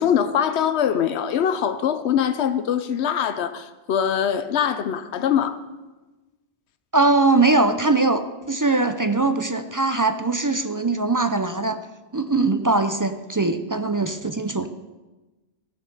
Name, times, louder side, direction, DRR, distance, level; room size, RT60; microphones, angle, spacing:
voice 1, 0.0-5.6, left 8 dB, 90° left, 0.9 m, -23 dB
voice 2, 6.9-11.8 12.1-14.7, right 3 dB, 30° right, 0.4 m, -21 dB
15.0 x 7.3 x 5.4 m
omnidirectional pair, 1.1 m